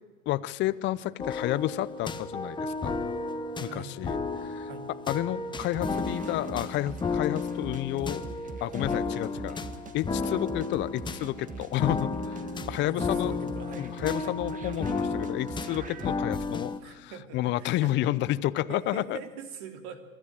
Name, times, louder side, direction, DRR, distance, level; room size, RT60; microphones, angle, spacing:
voice 1, 0.3-3.0 3.6-4.7 5.1-8.3 8.6-9.6 9.9-12.1 12.7-13.3 13.8-19.2, left 15 dB, 25° left, 16 dB, 0.7 m, -30 dB
sound 1, 1.2-16.8, left 4 dB, 10° left, 1.1 m, -33 dB
voice 2, 3.7-4.0 4.7-4.9 12.8-14.4 16.8-18.1 18.7-20.0, right 5 dB, 50° right, 7 dB, 3.0 m, -43 dB
sound 2, 5.6-16.1, right 4 dB, 20° right, 1.5 m, -43 dB
24.0 x 13.5 x 9.1 m, 1.4 s
hypercardioid pair, 110°, 41 cm